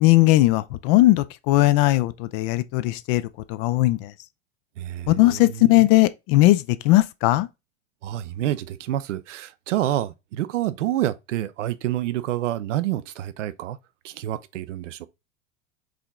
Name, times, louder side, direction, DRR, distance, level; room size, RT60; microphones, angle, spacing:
voice 1, 0.0-4.1 5.1-7.5, left 18 dB, 45° left, 0.5 m, -19 dB
voice 2, 4.8-5.9 8.0-13.8 14.0-15.1, right 13 dB, 70° right, 0.6 m, -28 dB
4.9 x 2.9 x 3.6 m
hypercardioid pair, 85°, 39 cm